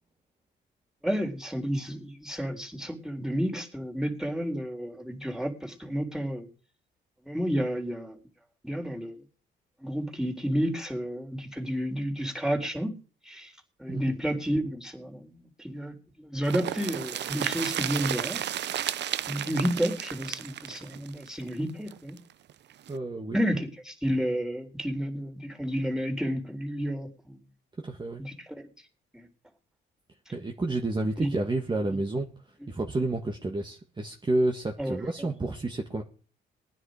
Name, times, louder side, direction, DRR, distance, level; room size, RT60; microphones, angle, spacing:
voice 1, 1.0-6.5 7.3-8.2 8.6-9.2 9.8-12.9 13.2-13.5 13.8-18.4 19.3-22.2 23.3-27.4 28.2-28.6 29.1-29.3 31.2-31.3 31.9-32.0 34.8-35.3, equal, 5° right, 2 dB, 3.8 m, -31 dB
sound 1, 16.4-22.2 22.5-22.6 22.9-23.0, right 11 dB, 60° right, 0.7 m, -33 dB
voice 2, 22.9-23.4 27.8-28.2 30.3-32.3 32.7-36.0, right 2 dB, 25° right, 1 dB, 1.9 m, -30 dB
19.5 x 10.0 x 5.1 m, 0.39 s
cardioid pair, 90°, 20 cm